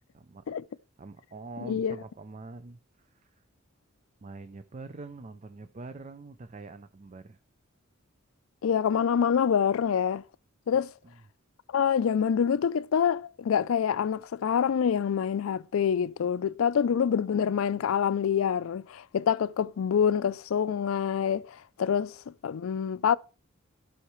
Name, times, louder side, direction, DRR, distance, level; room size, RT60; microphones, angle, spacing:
voice 1, 0.1-0.5 1.0-3.4 4.2-7.4 11.0-11.2, right 3 dB, 35° right, 0.4 m, -45 dB
voice 2, 1.6-2.0 8.6-10.2 10.7-10.9 11.7-22.2 22.4-23.2, left 7 dB, 80° left, 0.4 m, -26 dB
14.5 x 5.7 x 3.1 m
head